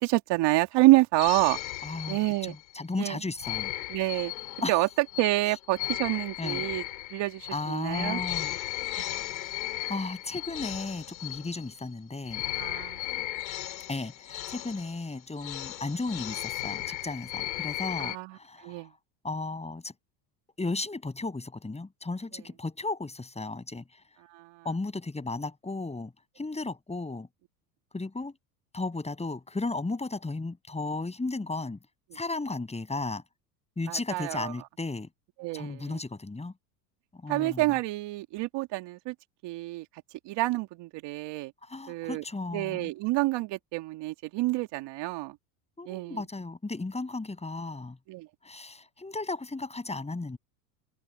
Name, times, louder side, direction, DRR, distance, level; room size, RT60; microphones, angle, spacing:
voice 1, 0.0-1.6 2.1-2.6 3.0-3.2 3.9-4.3 4.7-6.8 7.1-8.2 9.0-9.1 12.6-13.0 18.0-18.4 18.6-18.9 24.3-24.6 33.9-34.5 35.4-36.0 37.3-39.1 39.4-39.9 40.3-41.5 41.9-42.2 42.5-45.4 45.9-46.2 48.1-48.3, right 19 dB, 55° right, 2.4 m, -28 dB
sound 1, 1.2-2.7 3.4-11.9 12.2-18.2, left 15 dB, 90° left, 3.4 m, -36 dB
voice 2, 1.8-3.7 4.6-4.7 6.4-6.6 7.5-8.6 9.4-12.4 13.9-18.8 19.2-19.9 20.6-23.8 24.6-27.3 27.9-28.3 28.7-31.8 32.1-33.2 33.8-35.1 35.5-36.5 37.1-37.6 41.6-42.9 45.8-48.0 48.4-50.4, left 3 dB, 15° left, 7.5 m, -35 dB
hypercardioid pair, 90°, 49 cm